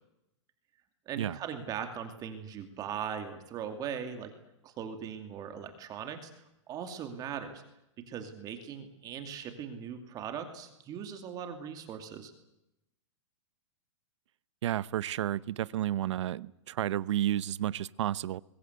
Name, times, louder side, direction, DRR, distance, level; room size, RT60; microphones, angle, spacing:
voice 1, 1.1-4.3 4.6-7.6 8.1-12.3, right 8 dB, 25° right, 2.6 m, -39 dB
voice 2, 14.6-18.4, right 12 dB, 65° right, 0.9 m, -31 dB
24.5 x 22.5 x 8.2 m
hypercardioid pair, 155°, 16 cm